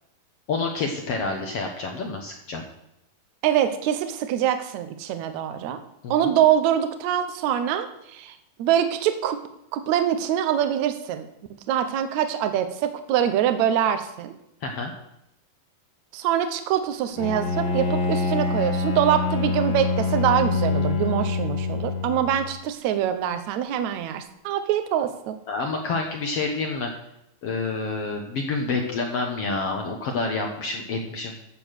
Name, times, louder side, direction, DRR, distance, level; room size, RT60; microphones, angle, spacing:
voice 1, 0.5-2.6 6.0-6.3 14.6-14.9 25.5-26.9 27.4-31.3, left 3 dB, 65° left, 2 dB, 1.5 m, -28 dB
voice 2, 3.4-5.8 6.1-9.4 9.7-11.3 11.7-14.3 16.1-25.3, right 10 dB, 70° right, 9 dB, 1.8 m, -24 dB
Bowed string instrument, 17.2-22.5, left 4 dB, 90° left, 4.3 m, -25 dB
14.5 x 7.1 x 6.3 m, 0.83 s
omnidirectional pair, 4.3 m